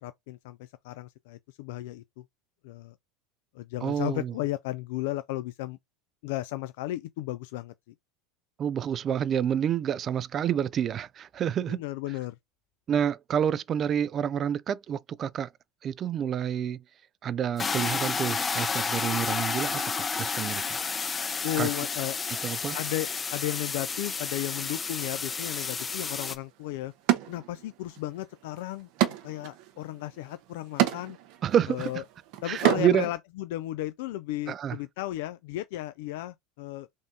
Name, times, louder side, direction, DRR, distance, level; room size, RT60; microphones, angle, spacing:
voice 1, 0.0-2.2 2.6-2.9 3.5-5.8 6.2-7.9 11.7-12.4 21.4-22.2 22.7-26.9 27.3-28.9 29.2-31.2 31.7-32.0 32.4-36.9, left 15 dB, 70° left, 0.3 m, -34 dB
voice 2, 3.8-4.3 8.6-11.8 12.9-15.5 15.8-16.8 17.2-20.8 21.6-21.7 22.4-22.8 31.4-31.9 32.4-33.1 34.5-34.8, right 9 dB, 40° right, 0.3 m, -28 dB
sound 1, 17.6-26.3, left 5 dB, 25° left, 0.6 m, -31 dB
sound 2, 26.3-26.4 27.1-28.0 28.3-33.1, right 13 dB, 65° right, 0.8 m, -29 dB
3.5 x 2.7 x 3.7 m
hypercardioid pair, 95°, 0 cm